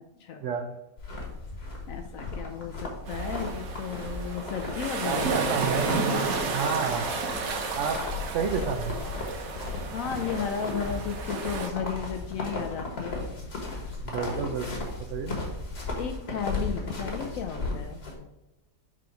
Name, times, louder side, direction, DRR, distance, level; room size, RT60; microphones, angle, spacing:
sound 1, 1.0-18.1, left 3 dB, 40° left, 1.4 m, -36 dB
voice 1, 1.9-5.3 9.9-13.2 16.0-18.3, left 7 dB, 70° left, 6 dB, 0.8 m, -34 dB
sound 2, 3.1-11.7, right 3 dB, 60° right, 1.2 m, -32 dB
voice 2, 5.1-5.9 6.4-7.1 7.7-8.0 8.3-9.0 14.0-15.4, right 6 dB, 80° right, 6 dB, 0.6 m, -30 dB
4.9 x 3.8 x 5.7 m, 0.98 s
omnidirectional pair, 1.8 m